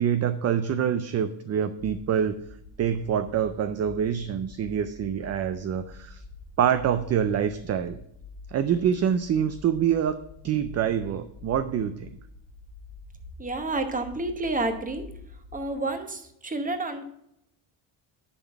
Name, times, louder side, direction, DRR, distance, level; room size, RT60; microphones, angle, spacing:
voice 1, 0.0-2.4 2.8-6.2 6.6-8.0 8.5-12.1, right 8 dB, 35° right, 11 dB, 0.4 m, -26 dB
sound 1, 1.8-15.7, left 3 dB, 55° left, 1.2 m, -47 dB
voice 2, 13.4-15.1 15.5-17.0, right 2 dB, 15° right, 6 dB, 1.0 m, -29 dB
10.5 x 3.8 x 7.0 m, 0.77 s
cardioid pair, 125°, 48 cm